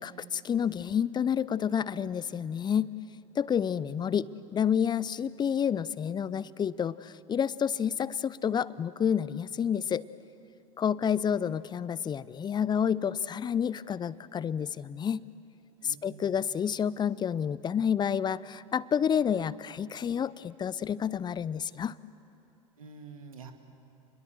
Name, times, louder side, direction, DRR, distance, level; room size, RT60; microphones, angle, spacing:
voice 1, 0.0-2.9 3.4-10.0 10.8-15.2 15.8-22.0, left 8 dB, 25° left, 20 dB, 0.6 m, -29 dB
voice 2, 3.8-4.2 15.8-16.4 22.8-23.5, right 5 dB, 75° right, 7 dB, 2.0 m, -48 dB
29.0 x 21.5 x 7.8 m, 2.8 s
figure-of-eight pair, 75°, 18 cm